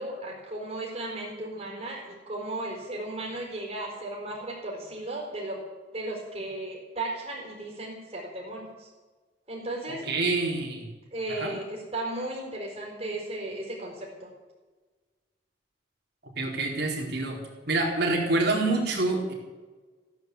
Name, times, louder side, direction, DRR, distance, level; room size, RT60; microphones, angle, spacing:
voice 1, 0.0-5.6 5.9-8.9 9.5-10.0 11.1-14.3, right 2 dB, 35° right, -3 dB, 4.8 m, -35 dB
voice 2, 9.9-10.9 11.3-11.5 16.4-17.4 17.7-19.3, right 2 dB, 60° right, 0 dB, 4.3 m, -27 dB
15.5 x 10.5 x 8.2 m, 1.3 s
head